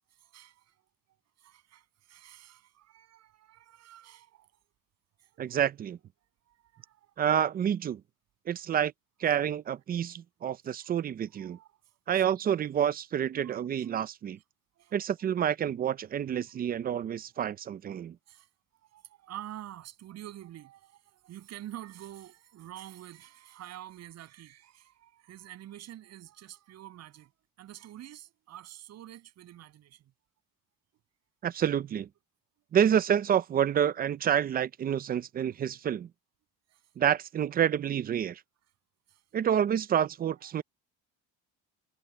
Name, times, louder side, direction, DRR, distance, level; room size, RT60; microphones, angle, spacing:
voice 1, 0.1-0.8 1.4-4.5 5.2-5.6 6.5-7.1 10.8-10.9 11.4-12.2 13.4-14.1 14.3-14.4 14.8-15.1 15.3-15.5 18.3-18.5 18.8-27.3 27.6-30.1 36.7-36.9 39.1-39.2 40.3-40.5, right 13 dB, 50° right, 6.9 m, -48 dB
voice 2, 5.4-6.0 7.2-8.0 8.5-8.9 9.2-11.6 12.1-14.4 14.9-18.2 31.4-32.1 32.7-36.1 37.0-38.4 39.3-40.6, right 9 dB, 30° right, 0.5 m, -28 dB
cardioid pair, 160°, 33 cm